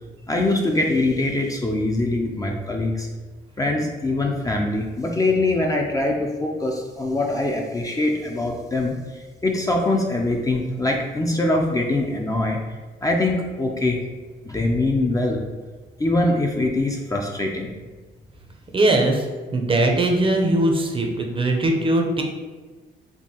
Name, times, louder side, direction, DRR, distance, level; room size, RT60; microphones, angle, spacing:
voice 1, 0.3-3.1 3.6-12.6 13.0-14.0 14.4-15.4 16.0-17.7, left 2 dB, 15° left, 0 dB, 0.4 m, -23 dB
voice 2, 18.7-19.2 19.5-22.2, right 2 dB, 25° right, 2 dB, 0.6 m, -20 dB
4.4 x 2.6 x 2.8 m, 1.3 s
cardioid pair, 90°, 20 cm